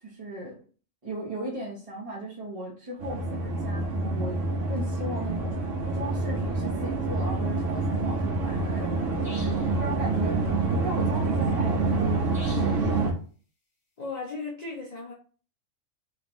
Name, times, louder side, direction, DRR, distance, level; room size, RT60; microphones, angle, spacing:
voice 1, 0.0-0.6 1.0-5.6 5.9-9.0 9.3-12.7, right 1 dB, 30° right, 0.8 m, -37 dB
sound 1, 3.0-13.1, right 3 dB, 65° right, 1.2 m, -27 dB
sound 2, 9.2-9.7 12.3-12.8, left 1 dB, 30° left, 0.9 m, -45 dB
voice 2, 14.0-15.1, left 3 dB, 55° left, 0.4 m, -36 dB
3.4 x 3.0 x 2.9 m
omnidirectional pair, 1.4 m